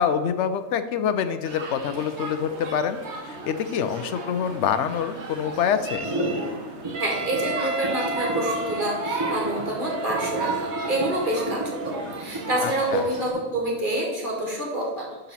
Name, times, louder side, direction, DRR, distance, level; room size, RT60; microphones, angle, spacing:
voice 1, 0.0-3.0 3.2-6.0 12.6-13.0, left 8 dB, 65° left, 10 dB, 0.9 m, -26 dB
sound 1, 1.4-13.3, right 3 dB, 60° right, 1.3 m, -35 dB
sound 2, 6.0-13.8, right 1 dB, 20° right, 1.1 m, -32 dB
Wind instrument woodwind instrument, 6.9-11.9, right 3 dB, 75° right, 1.9 m, -33 dB
voice 2, 7.0-15.3, right 1 dB, 40° right, -2 dB, 2.1 m, -28 dB
11.5 x 4.2 x 4.1 m, 1.3 s
omnidirectional pair, 1.4 m